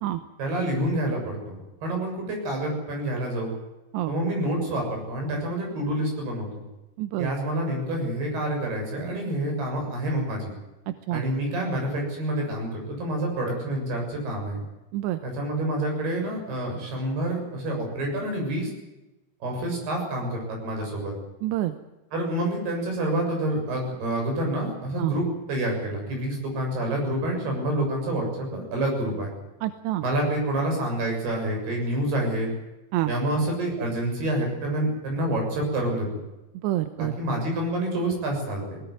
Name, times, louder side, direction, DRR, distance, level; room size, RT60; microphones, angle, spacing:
voice 1, 0.4-3.5 4.1-6.6 7.2-10.5 11.1-14.6 15.2-18.7 19.4-21.1 22.1-25.2 25.5-29.3 30.0-32.5 33.1-36.1 37.0-38.8, right 1 dB, 60° right, 2 dB, 8.9 m, -28 dB
voice 2, 7.0-7.3 10.9-11.2 14.9-15.2 21.4-21.7 25.0-25.1 29.6-30.0 32.9-33.1 36.6-37.1, right 15 dB, 75° right, 10 dB, 3.0 m, -27 dB
21.0 x 17.5 x 9.5 m, 1.0 s
omnidirectional pair, 5.3 m